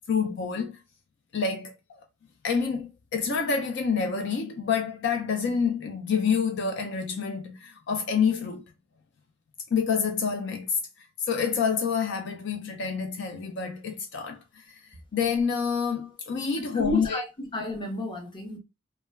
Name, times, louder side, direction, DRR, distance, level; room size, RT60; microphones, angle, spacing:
voice 1, 0.1-0.8 1.3-1.7 2.4-8.6 9.7-10.8 11.3-14.4 14.7-14.8 15.1-17.2, left 6 dB, 65° left, 0.4 m, -27 dB
voice 2, 16.7-18.6, left 1 dB, 25° left, 0.7 m, -32 dB
2.2 x 2.1 x 3.2 m
head